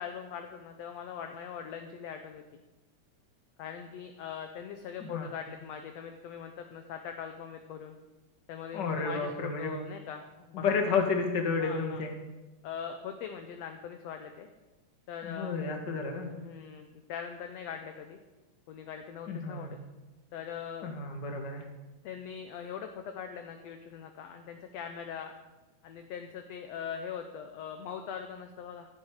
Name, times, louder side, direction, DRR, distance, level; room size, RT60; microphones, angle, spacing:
voice 1, 0.0-2.6 3.6-8.0 8.5-10.6 11.6-12.0 12.6-14.5 15.1-15.6 16.3-18.2 18.7-19.8 20.3-20.9 22.0-25.3 25.8-28.9, left 7 dB, 70° left, 6 dB, 1.7 m, -41 dB
voice 2, 8.7-9.8 10.5-12.1 15.3-16.3 19.3-19.7 20.8-21.6, left 4 dB, 40° left, 3 dB, 1.9 m, -31 dB
14.5 x 11.0 x 4.9 m, 1.1 s
omnidirectional pair, 3.6 m